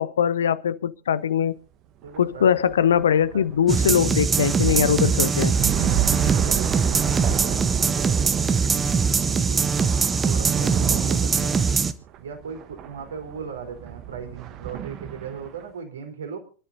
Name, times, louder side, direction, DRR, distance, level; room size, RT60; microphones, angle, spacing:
voice 1, 0.0-1.5 2.2-5.6, left 8 dB, 65° left, 0.8 m, -21 dB
sound 1, 2.0-15.6, right 10 dB, 35° right, 1.3 m, -31 dB
voice 2, 2.0-2.7 3.3-3.4 5.9-7.3 9.3-9.6 10.3-11.7 12.2-16.4, right 6 dB, 65° right, 3.8 m, -38 dB
sound 2, 3.7-11.9, right 5 dB, 20° right, 0.9 m, -22 dB
27.0 x 12.0 x 2.7 m
figure-of-eight pair, 90°, 0 cm